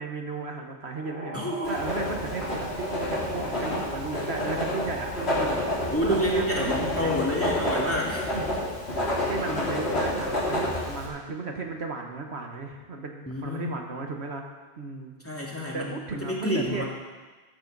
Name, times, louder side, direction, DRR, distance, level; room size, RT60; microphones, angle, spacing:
voice 1, 0.0-1.4 1.7-7.2 8.3-8.5 9.3-14.4 14.8-15.1 15.7-16.8, right 4 dB, 75° right, 2 dB, 1.6 m, -35 dB
sound 1, 0.9-10.6, right 1 dB, 10° right, 2.7 m, -41 dB
voice 2, 1.3-1.8 5.9-8.3 13.3-13.7 15.2-15.9 16.2-16.8, equal, 10° left, -4 dB, 2.4 m, -28 dB
Writing, 1.6-11.1, left 1 dB, 70° left, 3.6 m, -29 dB
13.5 x 13.0 x 4.0 m, 1.3 s
omnidirectional pair, 1.1 m